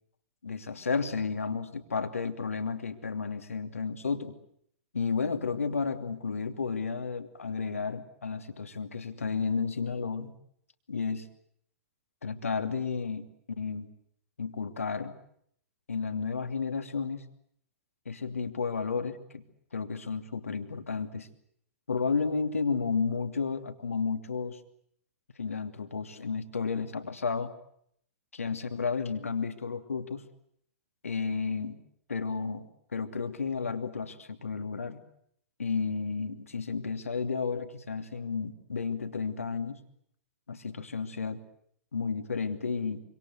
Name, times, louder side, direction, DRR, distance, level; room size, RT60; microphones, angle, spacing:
voice 1, 0.4-4.3 4.9-10.3 10.9-11.3 12.2-13.3 13.6-13.9 14.4-15.1 15.9-17.2 18.0-19.4 19.7-21.3 21.9-24.6 25.4-27.5 28.3-30.2 31.0-31.8 32.1-32.6 32.9-35.0 35.6-39.8 40.5-41.4 41.9-43.0, left 5 dB, 75° left, 7 dB, 2.8 m, -32 dB
26.5 x 25.5 x 8.0 m, 0.68 s
figure-of-eight pair, 110°, 8 cm